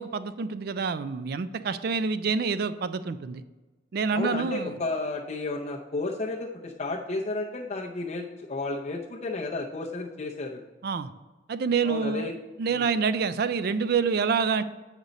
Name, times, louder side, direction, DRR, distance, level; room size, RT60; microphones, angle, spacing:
voice 1, 0.0-3.4 3.9-4.8 10.8-11.1 11.5-12.3 12.6-14.6, right 5 dB, 55° right, 13 dB, 0.4 m, -27 dB
voice 2, 4.1-10.6 11.8-12.3 12.7-12.8, left 2 dB, 35° left, -1 dB, 0.6 m, -32 dB
8.0 x 5.1 x 4.1 m, 1.2 s
head